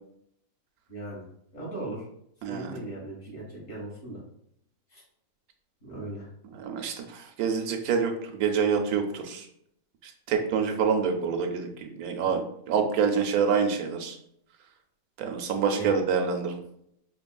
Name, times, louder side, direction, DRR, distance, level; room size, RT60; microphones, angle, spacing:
voice 1, 0.9-1.2 1.5-2.1 2.5-4.2 4.9-5.0 5.8-6.3 12.2-12.3 15.7-15.9, right 2 dB, 50° left, -5 dB, 1.9 m, -38 dB
voice 2, 2.4-2.8 6.5-9.5 10.0-14.2 15.2-16.6, right 6 dB, 85° right, 4 dB, 1.1 m, -27 dB
5.1 x 3.0 x 2.3 m, 0.73 s
omnidirectional pair, 1.5 m